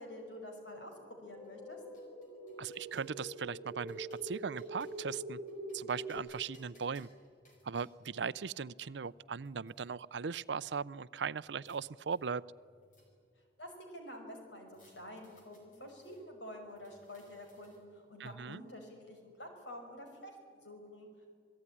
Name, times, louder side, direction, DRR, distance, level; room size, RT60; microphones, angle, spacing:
voice 1, 0.0-1.8 13.6-21.1, left 1 dB, 80° left, 3 dB, 5.6 m, -49 dB
sound 1, 1.2-6.2, right 1 dB, 15° left, 3.1 m, -45 dB
sound 2, 1.4-3.1 3.7-5.1 5.5-7.9 8.7-8.8 9.0-9.9 11.2-11.8 12.1-13.4 14.7-16.2 16.7-18.0, left 1 dB, 45° left, 6.2 m, -67 dB
voice 2, 2.6-5.4 5.7-7.1 7.6-12.4 18.2-18.6, right 6 dB, 75° right, 18 dB, 0.5 m, -38 dB
27.5 x 18.0 x 10.0 m, 2.2 s
head